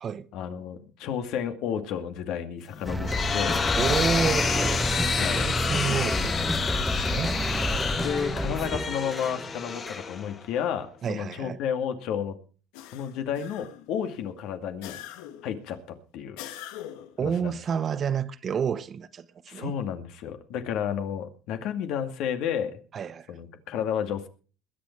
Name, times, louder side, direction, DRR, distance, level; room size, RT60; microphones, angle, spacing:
voice 1, 0.3-3.6 5.2-5.5 5.9-6.0 8.0-12.4 12.9-15.0 15.4-16.4 17.2-17.6 19.5-22.8 23.3-24.3, left 8 dB, 65° left, 2.3 m, -31 dB
sound 1, 2.7-10.6, left 6 dB, 30° left, 1.4 m, -29 dB
sound 2, 2.9-10.0, equal, ahead, 1.3 m, -29 dB
voice 2, 3.8-7.4 11.0-11.6 17.2-19.7 22.9-23.3, right 7 dB, 35° right, 0.9 m, -30 dB
sound 3, 12.7-13.9 14.8-15.5 16.4-17.2, left 12 dB, 85° left, 1.5 m, -42 dB
21.5 x 8.7 x 4.6 m
cardioid pair, 120°, 0 cm